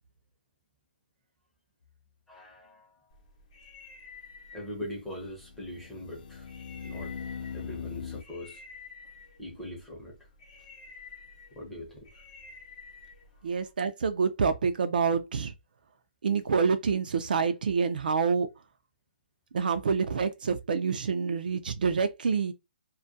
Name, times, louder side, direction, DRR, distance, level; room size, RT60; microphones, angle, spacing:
sound 1, 1.8-1.9 5.3-8.2, left 6 dB, 55° left, 0.4 m, -40 dB
voice 1, 2.3-3.0 4.5-6.5 6.8-7.1 7.5-8.6 9.4-10.2 11.5-12.2 13.4-13.5, left 1 dB, 5° left, 0.6 m, -42 dB
sound 2, 3.1-13.7, left 4 dB, 30° left, 0.8 m, -51 dB
voice 2, 13.4-15.5 16.2-18.5 19.5-22.5, right 5 dB, 60° right, 0.4 m, -27 dB
2.3 x 2.1 x 2.6 m
hypercardioid pair, 170°, 5 cm